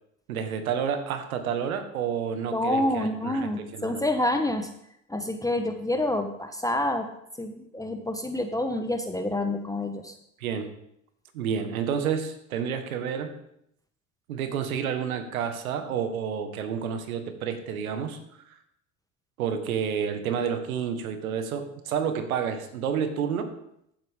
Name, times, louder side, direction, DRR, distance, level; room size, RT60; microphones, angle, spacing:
voice 1, 0.3-4.0 10.4-10.7 11.3-13.3 14.3-18.4 19.4-23.5, right 7 dB, 90° right, 8 dB, 1.4 m, -30 dB
voice 2, 2.5-4.7 5.1-7.1 7.4-10.2, left 1 dB, 10° left, 5 dB, 1.0 m, -28 dB
15.0 x 7.9 x 3.6 m, 0.77 s
hypercardioid pair, 80°, 41 cm